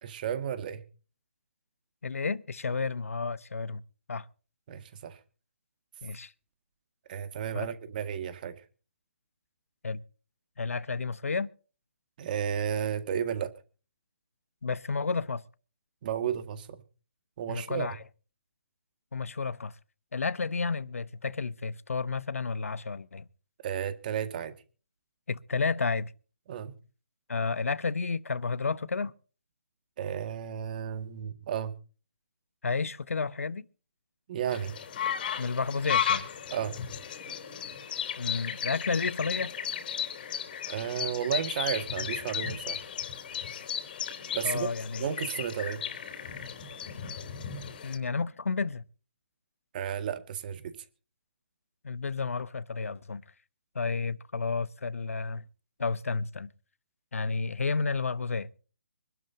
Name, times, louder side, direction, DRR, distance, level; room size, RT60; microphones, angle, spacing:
voice 1, 0.0-0.8 4.7-5.2 7.1-8.6 12.2-13.5 16.0-16.8 17.4-17.9 23.6-24.5 26.5-26.7 30.0-31.7 34.3-34.8 36.5-36.8 40.7-42.8 44.3-44.7 45.0-45.8 49.7-50.7, right 8 dB, 40° right, 1.9 m, -33 dB
voice 2, 2.0-3.8 4.1-4.3 6.0-6.3 7.5-7.7 9.8-10.0 10.6-11.5 14.6-15.4 17.5-18.0 19.1-19.7 20.1-23.2 25.3-26.1 27.3-29.1 32.6-33.6 35.4-36.3 38.2-39.5 44.4-45.1 47.8-48.8 51.8-53.2 53.7-55.4 55.8-56.5 57.1-58.5, left 4 dB, 85° left, 1.0 m, -31 dB
sound 1, 34.5-48.0, left 8 dB, 40° left, 3.4 m, -35 dB
25.0 x 12.0 x 2.8 m
hypercardioid pair, 155°, 7 cm